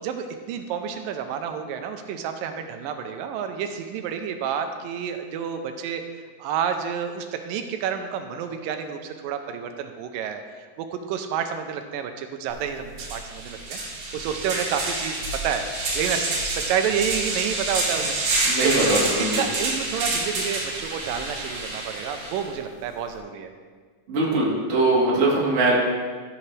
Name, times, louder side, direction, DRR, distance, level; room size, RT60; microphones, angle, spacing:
voice 1, 0.0-6.0 6.4-13.8 14.1-15.6 16.0-18.1 18.6-23.5, right 7 dB, 90° right, 6 dB, 2.3 m, -29 dB
sound 1, 12.5-12.6 12.9-22.5, right 2 dB, 55° right, 1.8 m, -28 dB
voice 2, 18.4-19.4 24.1-25.7, right 2 dB, 30° right, -4 dB, 1.4 m, -21 dB
14.0 x 7.1 x 3.2 m, 1.5 s
omnidirectional pair, 4.0 m